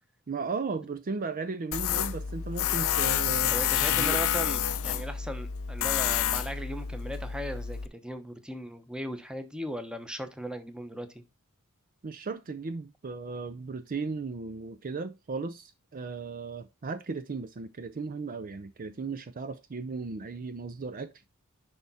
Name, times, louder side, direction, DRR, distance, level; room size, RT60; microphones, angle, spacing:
voice 1, 0.3-3.5 3.9-4.2 12.0-21.1, right 4 dB, 40° right, 0.5 m, -36 dB
Tools, 1.7-7.9, left 9 dB, 65° left, 0.6 m, -29 dB
voice 2, 3.5-11.2, equal, 5° right, 0.9 m, -37 dB
10.5 x 3.5 x 4.1 m
head